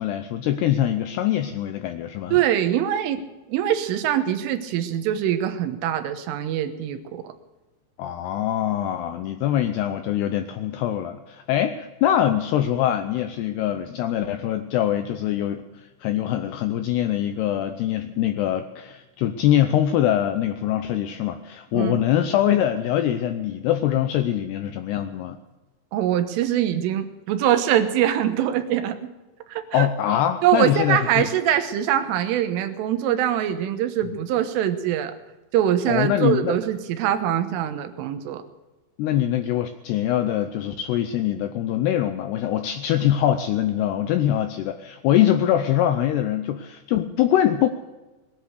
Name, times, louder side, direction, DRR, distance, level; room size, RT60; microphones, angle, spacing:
voice 1, 0.0-2.4 8.0-25.4 29.7-31.3 34.1-34.2 35.9-36.6 39.0-47.7, left 11 dB, 85° left, 8 dB, 2.4 m, -23 dB
voice 2, 2.3-3.2 3.5-7.3 21.7-22.0 25.9-29.1 29.5-29.9 30.4-35.1 35.5-38.4, right 10 dB, 85° right, 9 dB, 3.7 m, -23 dB
20.0 x 10.5 x 6.7 m, 1.1 s
omnidirectional pair, 5.6 m